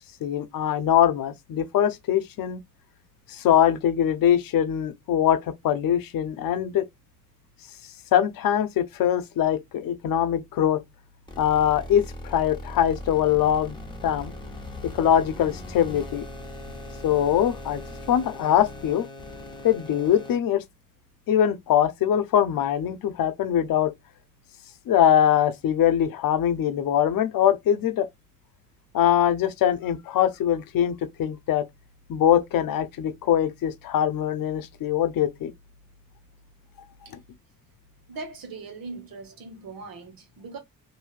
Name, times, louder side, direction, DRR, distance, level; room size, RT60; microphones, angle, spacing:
voice 1, 0.2-2.6 3.3-6.9 8.1-10.8 11.4-13.8 14.0-14.3 14.8-16.3 17.0-17.8 18.1-19.1 19.6-20.6 21.3-23.9 24.9-28.1 28.9-31.7 32.1-35.5, left 10 dB, 75° left, 0.6 m, -22 dB
sound 1, 11.3-20.4, left 1 dB, 15° left, 0.9 m, -39 dB
voice 2, 38.1-40.6, right 3 dB, 80° right, 1.2 m, -40 dB
3.1 x 2.7 x 2.4 m
cardioid pair, 100°, 34 cm